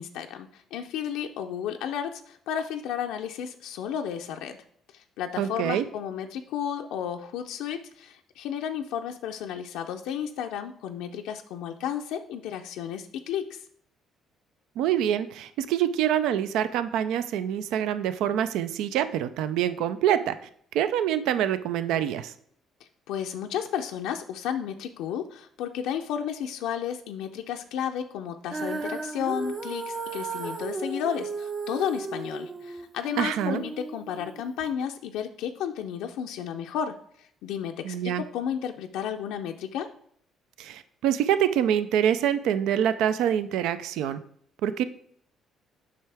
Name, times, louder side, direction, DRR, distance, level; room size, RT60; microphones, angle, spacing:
voice 1, 0.0-4.6 4.9-13.6 23.1-39.9, left 9 dB, 85° left, 4 dB, 0.5 m, -33 dB
voice 2, 5.4-5.9 14.8-20.4 20.7-22.3 33.2-33.6 37.8-38.2 40.6-44.2 44.6-44.8, right 10 dB, 85° right, 13 dB, 0.4 m, -25 dB
Female singing, 28.5-34.7, right 4 dB, 35° right, 0.7 m, -35 dB
7.6 x 5.6 x 3.4 m, 0.64 s
cardioid pair, 110°, 0 cm